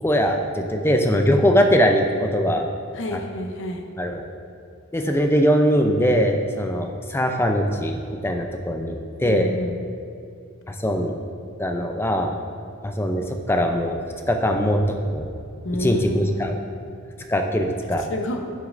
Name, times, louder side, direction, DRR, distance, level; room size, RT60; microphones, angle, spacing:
voice 1, 0.0-2.6 3.1-3.2 4.0-4.2 4.9-7.9 8.2-9.5 10.7-11.1 11.6-12.3 12.8-14.0 14.3-14.8 15.1-15.3 15.8-16.5 17.3-18.1, equal, 10° left, 4 dB, 0.4 m, -21 dB
voice 2, 2.9-3.8 9.2-9.8 15.6-16.5 18.0-18.4, equal, 55° left, 4 dB, 0.7 m, -29 dB
11.5 x 6.4 x 2.5 m, 2.5 s
head